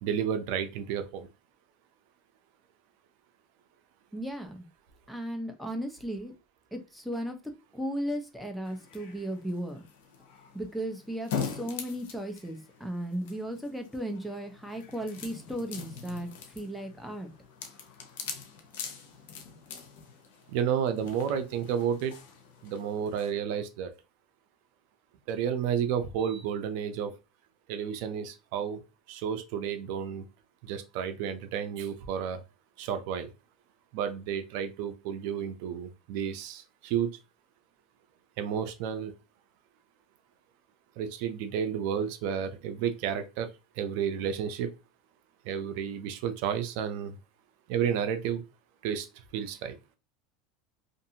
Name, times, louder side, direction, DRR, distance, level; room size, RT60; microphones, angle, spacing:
voice 1, 0.0-1.3 20.5-22.2 22.6-23.9 25.3-27.1 27.7-28.8 29.1-30.3 30.6-32.4 32.8-33.3 33.9-37.1 38.4-39.1 41.0-43.5 43.8-44.7 45.4-47.2 47.7-48.4 48.8-49.1 49.3-49.8, right 8 dB, 70° right, 9 dB, 0.5 m, -31 dB
voice 2, 4.1-4.6 5.1-6.3 6.7-9.8 10.5-17.3, equal, ahead, 4 dB, 0.7 m, -36 dB
sound 1, 8.7-23.3, left 6 dB, 80° left, 0.6 m, -43 dB
2.6 x 2.5 x 2.7 m, 0.28 s
supercardioid pair, 110°, 0 cm